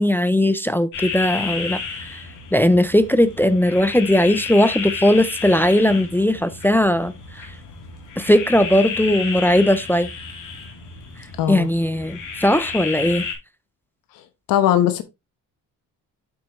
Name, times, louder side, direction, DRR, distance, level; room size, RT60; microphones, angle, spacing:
voice 1, 0.0-2.2 2.5-7.5 8.2-10.1 11.5-13.3, left 1 dB, 5° left, 0.3 m, -18 dB
sound 1, 0.9-13.3, left 5 dB, 65° left, 2.9 m, -32 dB
voice 2, 14.5-15.0, left 11 dB, 90° left, 1.0 m, -18 dB
8.8 x 5.9 x 3.0 m
cardioid pair, 150°, 33 cm